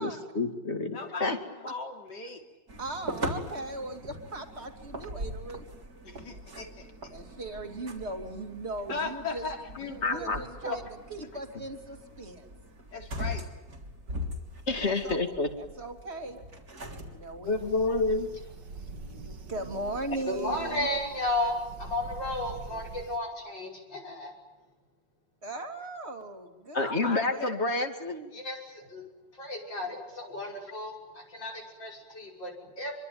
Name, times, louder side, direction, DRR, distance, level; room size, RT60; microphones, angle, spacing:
voice 1, 0.0-1.4 10.0-10.4 14.7-15.5 17.4-18.3 26.7-28.3, left 3 dB, 35° left, 6 dB, 2.7 m, -28 dB
voice 2, 0.9-2.4 6.0-7.1 8.9-10.8 12.9-13.4 26.8-27.6, left 3 dB, 70° left, 3 dB, 4.0 m, -38 dB
sound 1, 2.7-17.4, equal, 55° right, 3.8 m, -41 dB
voice 3, 2.8-5.7 7.1-9.5 10.0-10.8 11.1-12.5 14.7-15.2 15.6-16.4 17.1-17.5 19.1-20.9 25.4-27.5, right 2 dB, 35° right, 5 dB, 3.0 m, -38 dB
sound 2, 17.4-23.2, right 3 dB, 75° right, 2.5 m, -44 dB
voice 4, 20.3-24.3 28.3-29.0 29.3-32.9, left 1 dB, 90° left, 0 dB, 6.7 m, -34 dB
25.5 x 23.5 x 9.5 m, 1.1 s
omnidirectional pair, 1.9 m